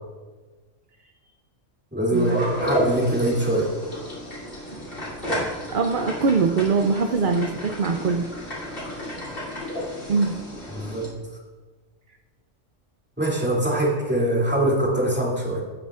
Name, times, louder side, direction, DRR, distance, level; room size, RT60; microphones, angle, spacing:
voice 1, 1.9-3.7 10.7-11.1 13.2-15.6, right 1 dB, 10° right, -4 dB, 2.5 m, -23 dB
sound 1, 2.1-11.1, equal, 45° left, 3.0 m, -31 dB
voice 2, 5.7-8.3 10.1-10.4, right 4 dB, 55° right, 5 dB, 0.6 m, -22 dB
17.5 x 9.6 x 2.4 m, 1.3 s
omnidirectional pair, 1.3 m